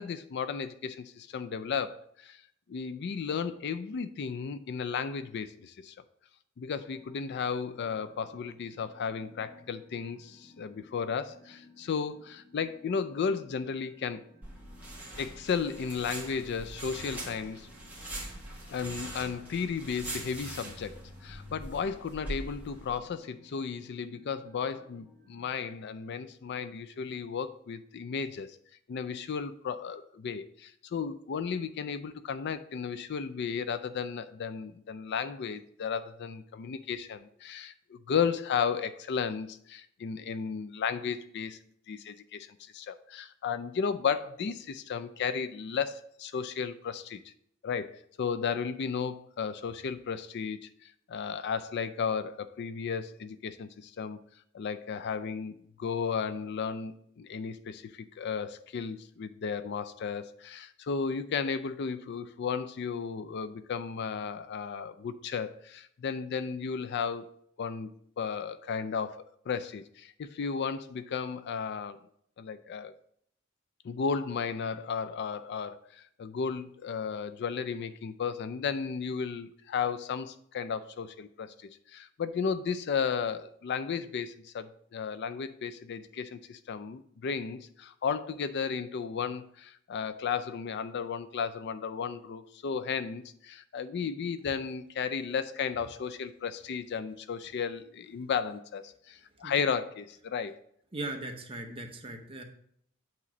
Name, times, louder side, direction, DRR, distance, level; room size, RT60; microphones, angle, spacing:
voice 1, 0.0-2.4 2.7-5.9 6.6-14.2 15.2-17.7 18.7-28.6 28.9-41.6 41.9-47.3 47.6-54.2 54.5-67.3 67.6-67.9 68.2-72.0 72.4-72.9 73.8-100.6, left 6 dB, 55° left, 12 dB, 0.4 m, -34 dB
sound 1, 6.8-25.6, left 2 dB, 10° left, 0.9 m, -59 dB
sound 2, 14.4-23.0, right 1 dB, 10° right, 1.5 m, -42 dB
voice 2, 100.9-102.4, right 2 dB, 25° right, 4 dB, 0.9 m, -38 dB
8.4 x 3.1 x 5.8 m, 0.68 s
head